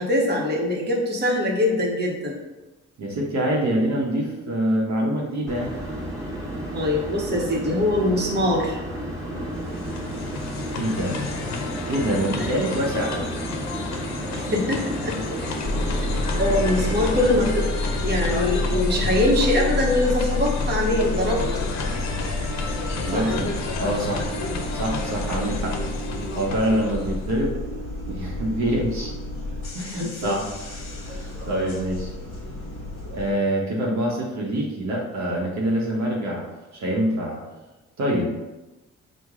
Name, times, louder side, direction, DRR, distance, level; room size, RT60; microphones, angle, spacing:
voice 1, 0.0-2.4 6.7-8.8 12.4-12.5 14.3-15.2 16.4-17.7 18.0-21.4 22.7-23.3 25.6-25.9 29.9-30.4, left 1 dB, 35° right, -2 dB, 1.0 m, -23 dB
voice 2, 3.0-5.7 10.8-11.2 11.8-13.3 22.9-24.3 24.7-25.8 26.3-27.6 28.1-29.2 29.7-30.5 31.0-32.1 33.1-37.5 38.0-38.3, right 1 dB, 65° right, -3 dB, 0.9 m, -25 dB
sound 1, 5.5-17.4, right 1 dB, 10° right, 1.4 m, -32 dB
sound 2, 9.4-27.5, left 4 dB, 65° left, 0.6 m, -32 dB
sound 3, 15.6-33.3, left 2 dB, 45° left, 1.0 m, -29 dB
4.7 x 2.2 x 3.6 m, 1.1 s
cardioid pair, 90°, 30 cm